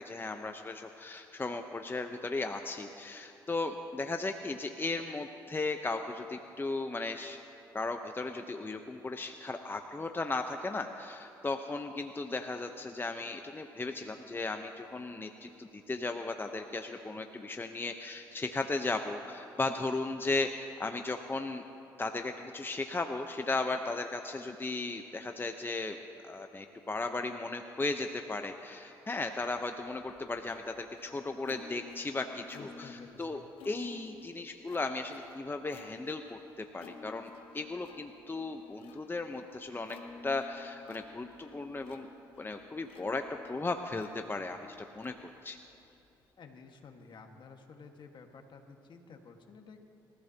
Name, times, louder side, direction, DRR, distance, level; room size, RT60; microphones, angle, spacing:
voice 1, 0.0-7.4 7.7-21.6 22.0-26.0 26.2-40.0 40.2-42.1 42.4-43.2 43.5-44.6 45.0-45.1 45.4-45.6, left 3 dB, 25° left, 5 dB, 0.9 m, -36 dB
Plucked string instrument, 29.6-46.3, left 5 dB, 75° left, 1.3 m, -54 dB
voice 2, 32.5-33.4 46.4-49.8, left 4 dB, 55° left, 4 dB, 1.7 m, -52 dB
27.5 x 14.5 x 2.9 m, 2.8 s
supercardioid pair, 55°, 9 cm